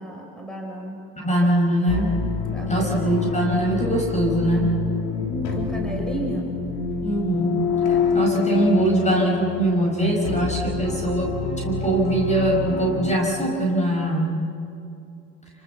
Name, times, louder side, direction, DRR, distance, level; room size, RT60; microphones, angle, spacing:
voice 1, 0.0-1.0 2.4-3.1 5.2-6.5, right 1 dB, ahead, 1 dB, 6.0 m, -33 dB
voice 2, 1.2-2.1 2.7-4.8 7.0-11.4 11.6-14.5, right 1 dB, 20° left, 0 dB, 6.0 m, -22 dB
sound 1, 1.9-13.2, left 5 dB, 75° left, 3.7 m, -27 dB
27.0 x 25.0 x 7.2 m, 2.5 s
supercardioid pair, 85°, 38 cm